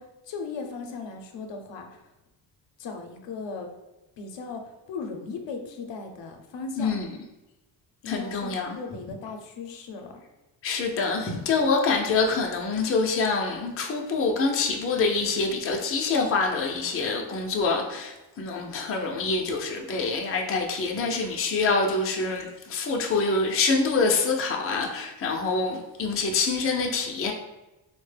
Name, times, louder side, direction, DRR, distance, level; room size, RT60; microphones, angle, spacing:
voice 1, 0.0-1.9 2.8-3.7 4.2-4.6 4.9-7.0 8.0-10.2, left 4 dB, 70° left, 3 dB, 0.6 m, -37 dB
voice 2, 8.1-8.8 10.6-27.3, left 4 dB, 30° left, 1 dB, 0.5 m, -26 dB
3.8 x 2.1 x 3.2 m, 1.0 s
cardioid pair, 115°, 45 cm